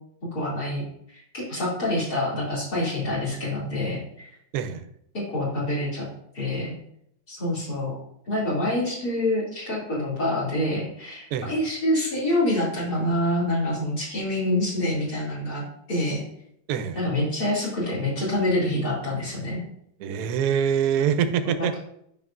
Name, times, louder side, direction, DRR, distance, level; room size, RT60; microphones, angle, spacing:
voice 1, 0.3-0.8 1.1-4.3 5.1-6.1 6.3-6.7 7.3-8.0 8.3-15.6 15.9-16.2 16.9-19.6 21.6-21.8, left 1 dB, 60° left, -8 dB, 2.9 m, -26 dB
voice 2, 20.0-21.8, right 8 dB, 70° right, 10 dB, 1.1 m, -24 dB
9.2 x 5.5 x 2.4 m, 0.72 s
omnidirectional pair, 1.9 m